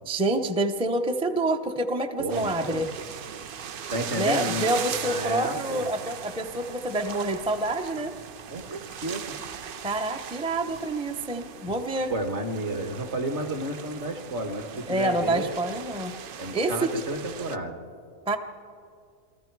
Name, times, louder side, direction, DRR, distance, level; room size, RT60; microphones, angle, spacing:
voice 1, 0.1-2.9 4.2-8.1 9.8-12.1 14.9-16.1 16.5-16.9 18.3-18.4, right 1 dB, 5° right, 5 dB, 0.4 m, -27 dB
voice 2, 2.2-2.9 3.9-4.7 5.0-5.9 8.5-9.3 12.1-15.6 16.4-17.8, right 1 dB, 50° right, 6 dB, 1.7 m, -31 dB
sound 1, 2.3-17.6, right 8 dB, 70° right, 0.5 m, -39 dB
28.5 x 21.0 x 4.7 m, 2.3 s
omnidirectional pair, 1.6 m